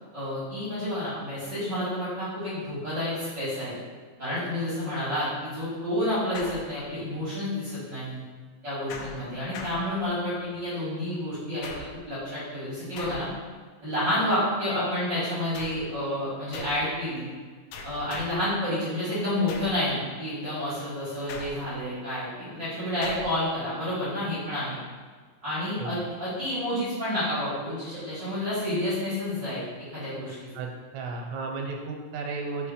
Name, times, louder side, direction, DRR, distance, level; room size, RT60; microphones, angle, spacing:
voice 1, 0.1-3.7 4.2-8.2 8.6-11.7 12.1-13.3 13.8-17.3 17.8-24.8 25.4-30.4, left 1 dB, 50° right, -11 dB, 1.3 m, -29 dB
sound 1, 6.3-7.2 8.9-10.4 11.6-12.2 13.0-13.6 15.5-16.0 16.5-16.9 17.7-18.5 19.5-19.9 21.3-21.9 23.0-23.4, left 3 dB, 90° left, 2.2 m, -41 dB
voice 2, 30.5-32.7, right 3 dB, 80° right, 1 dB, 2.9 m, -34 dB
6.6 x 3.0 x 5.0 m, 1.5 s
omnidirectional pair, 5.1 m